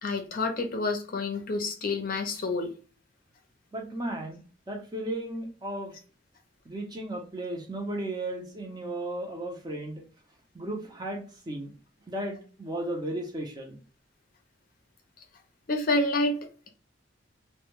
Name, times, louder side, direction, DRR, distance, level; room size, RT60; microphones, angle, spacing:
voice 1, 0.0-2.7 15.7-16.4, left 2 dB, 50° left, 0.5 m, -28 dB
voice 2, 3.7-4.4 4.7-5.9 6.6-10.0 10.5-11.7 12.1-13.8, right 1 dB, 20° right, 0.6 m, -35 dB
2.1 x 2.1 x 2.9 m
head